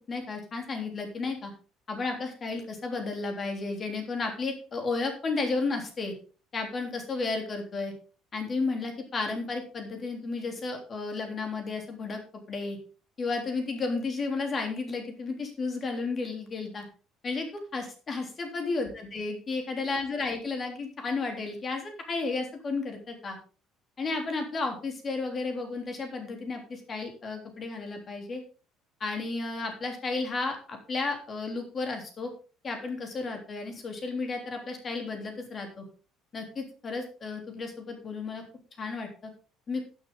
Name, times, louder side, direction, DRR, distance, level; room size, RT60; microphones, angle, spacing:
voice 1, 0.1-1.5 1.9-6.1 6.5-7.9 8.3-12.2 12.5-12.8 13.2-16.9 17.2-23.4 24.0-28.4 29.0-32.3 32.6-35.8 36.3-38.4 38.8-39.3 39.7-39.8, left 3 dB, 25° left, 4 dB, 3.4 m, -33 dB
12.0 x 10.0 x 3.8 m, 0.36 s
cardioid pair, 165°, 0 cm